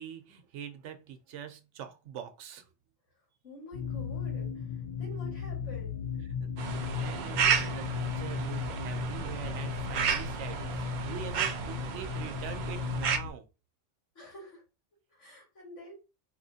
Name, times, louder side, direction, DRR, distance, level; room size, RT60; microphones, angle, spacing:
voice 1, 0.0-2.7 6.4-6.5 6.9-13.5, right 8 dB, 80° right, 1.0 m, -44 dB
voice 2, 3.4-6.1 14.1-14.6 15.1-15.9, left 1 dB, 90° left, 2.2 m, -48 dB
sound 1, 3.7-13.3, left 7 dB, 60° left, 0.5 m, -36 dB
sound 2, 6.6-13.2, right 7 dB, 60° right, 0.5 m, -32 dB
4.3 x 2.9 x 2.7 m
omnidirectional pair, 1.2 m